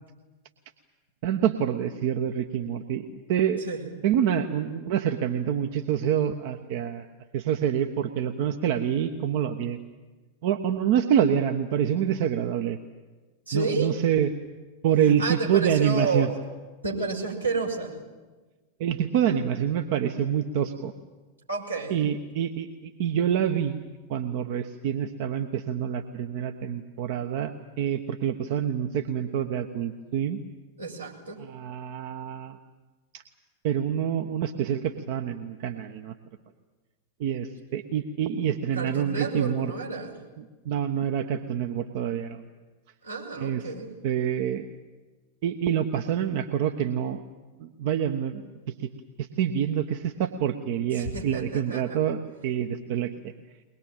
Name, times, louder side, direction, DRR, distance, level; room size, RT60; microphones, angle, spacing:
voice 1, 1.2-3.6 4.0-7.1 7.3-9.8 10.4-12.8 13.5-14.3 14.8-16.3 18.8-20.9 21.9-30.4 31.4-32.6 33.1-33.2 33.6-36.1 37.2-39.7 40.4-42.4 43.4-43.6 44.0-44.7 45.4-47.2 47.6-48.4 48.8-48.9 49.2-53.3, right 9 dB, 50° right, 6 dB, 1.2 m, -27 dB
voice 2, 13.5-13.9 15.0-16.4 16.8-17.9 21.5-22.0 30.8-31.4 38.7-40.1 43.0-43.9 48.4-48.5 50.9-52.0, right 3 dB, 85° right, -3 dB, 6.2 m, -31 dB
22.5 x 21.0 x 9.1 m, 1.3 s
figure-of-eight pair, 90°, 0 cm